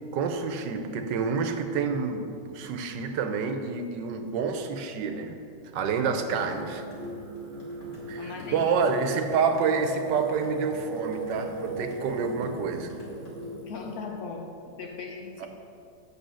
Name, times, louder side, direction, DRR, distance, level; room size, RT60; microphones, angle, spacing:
voice 1, 0.1-5.4 5.7-6.8 8.1-12.9 15.4-15.5, right 5 dB, 80° right, 7 dB, 1.4 m, -28 dB
sound 1, 5.9-13.5, left 1 dB, 80° left, 3.3 m, -45 dB
Singing, 6.2-14.1, right 2 dB, 35° right, 0.9 m, -39 dB
voice 2, 8.2-8.8 13.6-14.5 14.8-15.5, left 4 dB, 60° left, 2 dB, 1.4 m, -38 dB
8.2 x 6.3 x 6.2 m, 2.6 s
omnidirectional pair, 1.9 m